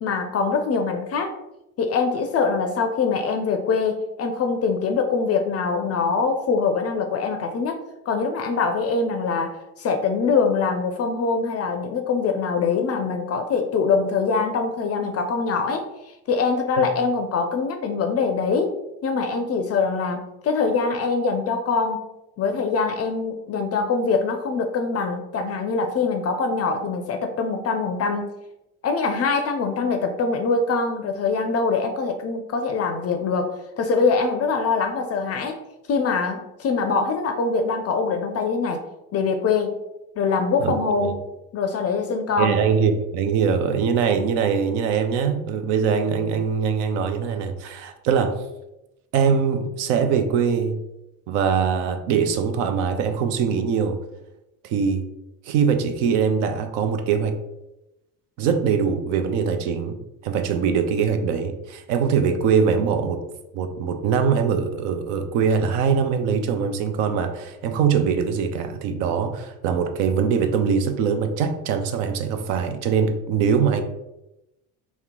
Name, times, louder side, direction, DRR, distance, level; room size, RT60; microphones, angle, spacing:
voice 1, 0.0-1.3 1.8-22.0 22.4-28.3 28.8-35.6 35.9-38.8 39.1-39.8 40.2-41.1 41.5-42.6, left 4 dB, 35° left, 5 dB, 0.4 m, -23 dB
voice 2, 42.4-48.4 49.1-50.8 51.3-54.0 54.6-55.0 55.5-57.4 58.4-60.0 60.2-63.2 63.5-73.8, right 6 dB, 70° right, 7 dB, 0.6 m, -22 dB
2.8 x 2.1 x 3.6 m, 0.93 s
hypercardioid pair, 70°, 43 cm